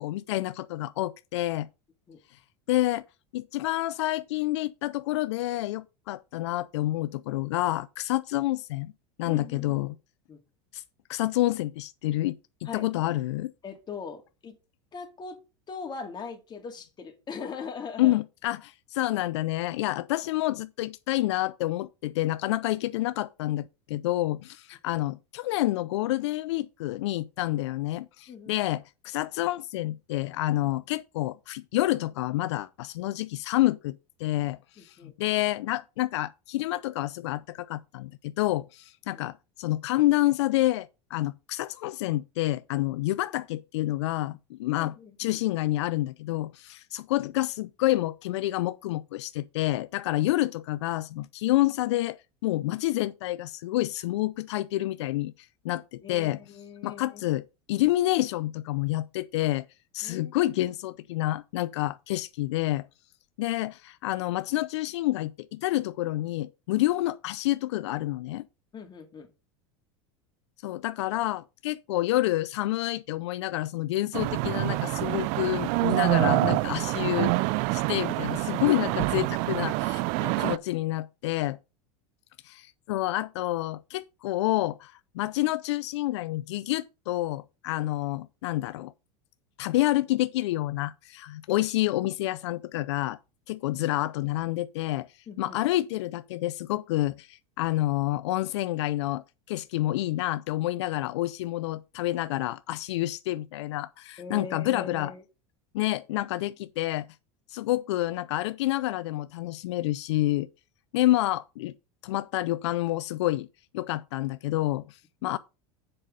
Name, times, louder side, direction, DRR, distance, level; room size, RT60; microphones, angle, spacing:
voice 1, 0.0-1.7 2.7-3.0 3.3-8.9 9.2-10.0 10.7-10.8 11.1-12.4 12.7-13.5 18.0-52.2 52.4-56.4 56.8-59.7 59.9-62.9 63.4-68.5 70.6-77.3 77.7-80.0 80.4-81.6 82.4-88.9 89.6-93.2 93.5-95.1 95.4-105.1 105.7-107.1 107.5-110.5 110.9-111.7 112.0-113.5 113.7-115.4, left 16 dB, 80° left, 0.4 m, -28 dB
voice 2, 9.2-9.9 10.3-10.4 12.6-12.8 13.6-14.6 14.9-15.4 15.7-18.2 28.3-28.5 34.8-35.1 39.1-39.2 44.8-45.4 56.0-57.2 57.8-57.9 60.0-60.3 68.7-69.3 80.2-80.5 95.3-95.6 104.2-105.2 115.2-115.3, left 5 dB, 30° left, 2.4 m, -41 dB
sound 1, 74.1-80.6, right 22 dB, 60° right, 0.4 m, -26 dB
7.7 x 5.6 x 5.2 m
hypercardioid pair, 105°, 14 cm